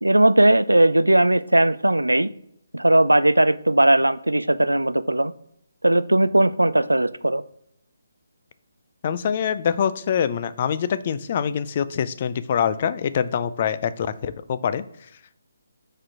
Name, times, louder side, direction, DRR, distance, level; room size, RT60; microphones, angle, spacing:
voice 1, 0.0-2.3 2.7-5.3 5.8-7.4, right 1 dB, 90° right, 15 dB, 0.3 m, -18 dB
voice 2, 9.0-14.8, left 8 dB, 40° left, 14 dB, 0.4 m, -24 dB
4.9 x 4.3 x 4.7 m, 0.74 s
figure-of-eight pair, 145°, 0 cm